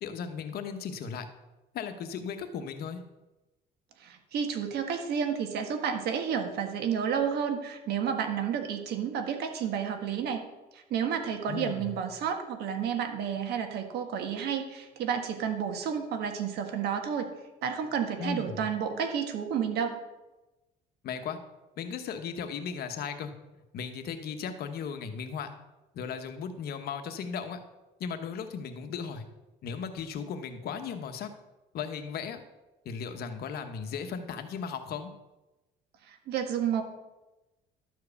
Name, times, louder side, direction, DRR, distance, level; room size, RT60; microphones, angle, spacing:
voice 1, 0.0-1.3 1.7-3.0 11.5-11.9 18.2-18.6 21.0-21.4 21.8-23.3 23.7-25.5 25.9-27.6 28.0-29.2 29.6-31.3 31.7-32.4 32.8-35.1, left 6 dB, 65° left, 8 dB, 1.1 m, -36 dB
voice 2, 4.0-10.4 10.7-17.3 17.6-20.0 36.1-36.8, right 7 dB, 75° right, 5 dB, 1.6 m, -31 dB
12.0 x 4.7 x 6.9 m, 1.0 s
cardioid pair, 110°, 17 cm